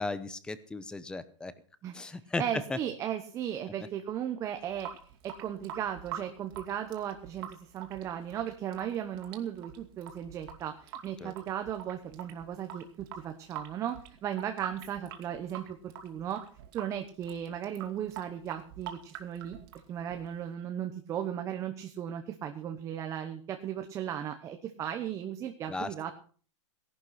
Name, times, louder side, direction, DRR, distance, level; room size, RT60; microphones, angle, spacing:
voice 1, 0.0-1.5 1.9-2.4 2.7-2.8 11.2-11.3 25.7-25.9, left 3 dB, 5° left, 15 dB, 0.8 m, -36 dB
voice 2, 2.4-4.9 5.2-16.4 16.7-19.6 19.9-26.1, right 10 dB, 20° right, 6 dB, 1.1 m, -36 dB
Water tap faucet / Sink (filling or washing) / Drip, 4.6-20.5, right 9 dB, 45° right, 2.6 m, -46 dB
17.5 x 11.5 x 5.9 m, 0.43 s
supercardioid pair, 165°, 16 cm